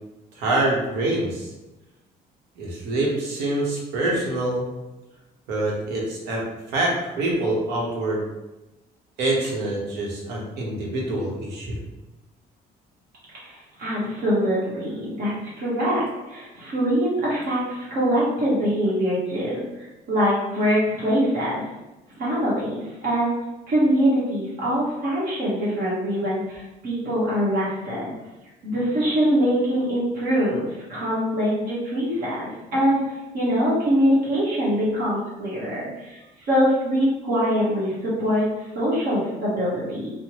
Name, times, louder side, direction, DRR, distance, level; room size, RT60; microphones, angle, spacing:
voice 1, 0.3-1.5 2.6-4.6 5.5-8.2 9.2-11.8, right 2 dB, 80° right, -3 dB, 1.0 m, -25 dB
voice 2, 13.3-21.6 22.2-23.3 23.7-28.1 28.6-40.1, equal, 60° right, -7 dB, 1.2 m, -23 dB
3.3 x 2.0 x 3.0 m, 1.0 s
cardioid pair, 110°, 17 cm